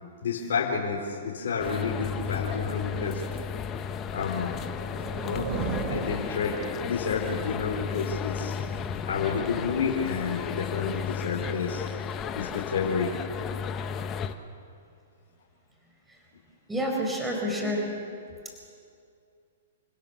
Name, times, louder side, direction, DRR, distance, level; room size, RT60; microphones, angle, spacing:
voice 1, 0.2-3.2 4.1-4.5 5.2-5.5 5.9-6.6 6.8-8.6 9.1-11.8 12.4-13.1 17.6-17.7, left 5 dB, 70° left, -2 dB, 4.2 m, -30 dB
sound 1, 1.6-14.4, left 7 dB, 25° left, 1.2 m, -34 dB
sound 2, 4.2-7.1, right 4 dB, 40° right, 3.7 m, -35 dB
voice 2, 16.7-17.8, equal, 5° right, 0 dB, 5.0 m, -29 dB
28.5 x 17.0 x 7.1 m, 2.4 s
hypercardioid pair, 130°, 0 cm